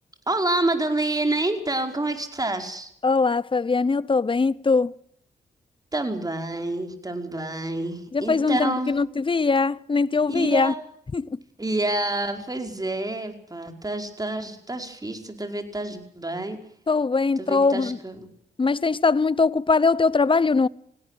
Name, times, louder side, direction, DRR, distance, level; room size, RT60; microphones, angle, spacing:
voice 1, 0.3-2.9 5.9-9.0 10.3-10.8 11.6-16.6 17.4-18.3, right 2 dB, 20° right, 4.9 m, -28 dB
voice 2, 3.0-4.9 8.1-10.7 11.1-11.4 16.9-18.0 18.6-20.7, left 4 dB, 30° left, 0.8 m, -21 dB
18.5 x 17.5 x 9.2 m
cardioid pair, 60°, 18 cm